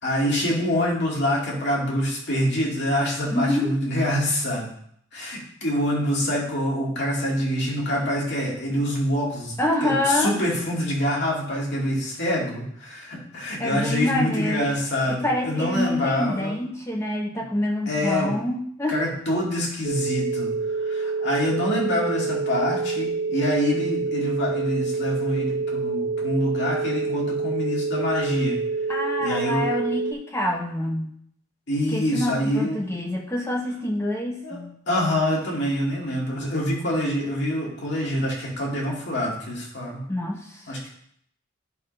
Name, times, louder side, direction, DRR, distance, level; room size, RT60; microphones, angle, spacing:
voice 1, 0.0-4.7 5.1-16.6 17.9-18.3 18.9-28.6 29.2-29.8 31.7-32.9 34.4-34.6 34.9-40.0 40.7-40.9, left 1 dB, 60° left, -3 dB, 2.3 m, -26 dB
voice 2, 3.3-3.7 9.6-10.4 13.6-14.7 15.1-19.0 28.9-31.1 31.9-34.7 40.1-40.7, left 1 dB, 15° left, 0 dB, 0.8 m, -26 dB
sound 1, 19.8-30.1, right 4 dB, 65° right, 1.5 m, -27 dB
10.5 x 3.7 x 5.4 m, 0.68 s
head